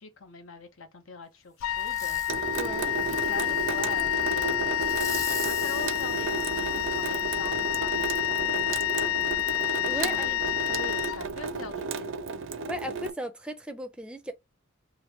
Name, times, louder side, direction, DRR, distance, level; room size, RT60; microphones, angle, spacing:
voice 1, 0.0-2.2 2.5-4.8 5.4-7.9 8.2-9.3 9.9-10.4 10.7-12.1, left 4 dB, 70° left, 0.9 m, -43 dB
Wind instrument woodwind instrument, 1.6-11.7, left 13 dB, 90° left, 0.3 m, -29 dB
Fireworks, 1.8-2.4 2.9-4.0 4.8-7.2 7.7-7.8, left 3 dB, 15° left, 0.9 m, -41 dB
Water tap faucet / Sink (filling or washing) / Drip, 2.3-13.1, right 4 dB, 60° right, 0.4 m, -33 dB
voice 2, 9.9-10.3 12.7-14.3, equal, 5° right, 0.5 m, -36 dB
2.9 x 2.6 x 4.4 m
head